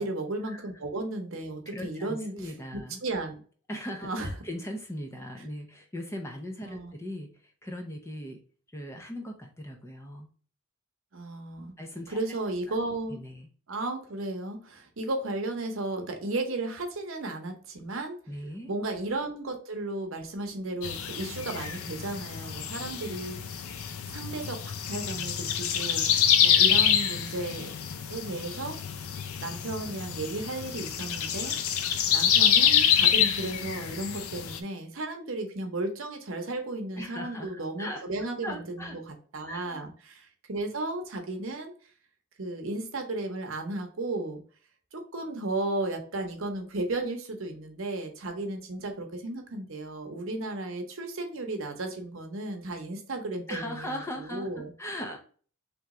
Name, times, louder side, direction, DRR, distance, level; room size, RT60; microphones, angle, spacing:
voice 1, 0.0-3.4 4.0-4.3 6.6-6.9 11.1-11.7 12.1-13.2 13.7-18.2 18.7-23.4 24.1-26.1 26.4-27.7 28.1-28.8 29.4-31.5 32.1-41.7 42.4-44.4 44.9-54.7, right 2 dB, 65° right, 4 dB, 0.8 m, -34 dB
voice 2, 1.7-3.0 3.7-8.4 8.7-10.3 11.8-12.2 13.1-13.5 18.3-18.7 37.0-38.0 38.4-39.0 39.5-39.8 53.5-55.2, left 1 dB, 10° left, 3 dB, 0.5 m, -39 dB
sound 1, 20.8-34.6, left 8 dB, 85° left, 0.5 m, -26 dB
3.3 x 3.0 x 3.6 m, 0.42 s
head